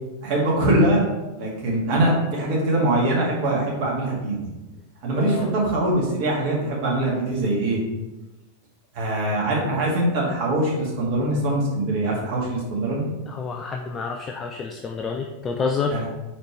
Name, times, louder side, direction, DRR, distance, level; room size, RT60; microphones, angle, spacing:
voice 1, 0.2-1.1 1.4-4.4 5.0-7.8 8.9-13.1 15.9-16.1, right 1 dB, 45° right, -4 dB, 2.0 m, -22 dB
voice 2, 5.1-5.5 13.3-16.0, left 5 dB, 25° left, 2 dB, 0.4 m, -28 dB
5.0 x 4.1 x 4.5 m, 1.1 s
figure-of-eight pair, 90°, 0 cm